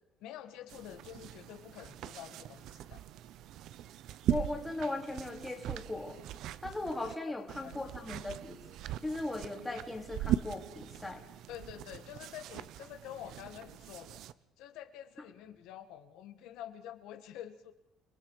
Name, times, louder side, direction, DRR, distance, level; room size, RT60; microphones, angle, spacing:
voice 1, 0.2-3.0 7.5-8.0 11.5-14.2 14.6-17.7, left 11 dB, 75° left, 7 dB, 1.6 m, -48 dB
sound 1, 0.7-7.1 7.5-14.3, right 12 dB, 55° right, 0.7 m, -40 dB
voice 2, 4.3-6.2 6.6-8.6 9.0-11.2, left 2 dB, 5° left, 2 dB, 2.7 m, -38 dB
29.5 x 20.0 x 4.8 m, 0.92 s
cardioid pair, 175°, 0 cm